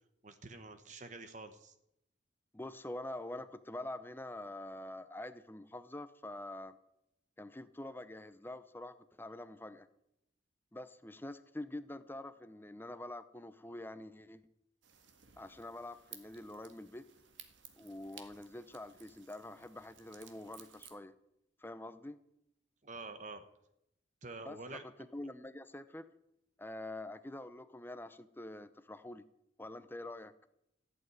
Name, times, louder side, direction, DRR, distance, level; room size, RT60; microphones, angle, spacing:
voice 1, 0.2-1.7 22.8-23.4 24.2-24.8, right 3 dB, 40° right, 9 dB, 1.0 m, -47 dB
voice 2, 2.5-6.8 7.4-9.9 10.7-14.4 15.4-17.0 17.8-21.1 21.6-22.2 24.5-26.1 26.6-29.2 29.6-30.3, left 1 dB, 10° left, 12 dB, 0.7 m, -46 dB
sound 1, 14.8-21.0, right 8 dB, 75° right, 1.7 m, -57 dB
15.0 x 8.1 x 9.5 m, 0.83 s
head